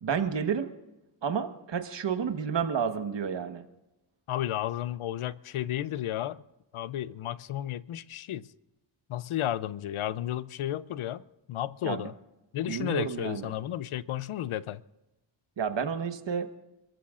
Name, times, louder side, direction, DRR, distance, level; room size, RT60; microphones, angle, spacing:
voice 1, 0.0-0.7 1.2-3.6 11.8-12.1 12.7-13.5 15.6-16.5, right 7 dB, 60° right, 1.4 m, -30 dB
voice 2, 4.3-6.4 6.7-8.5 9.1-12.1 12.5-14.8, left 12 dB, 80° left, 0.6 m, -33 dB
27.0 x 14.5 x 2.5 m
cardioid pair, 90°, 49 cm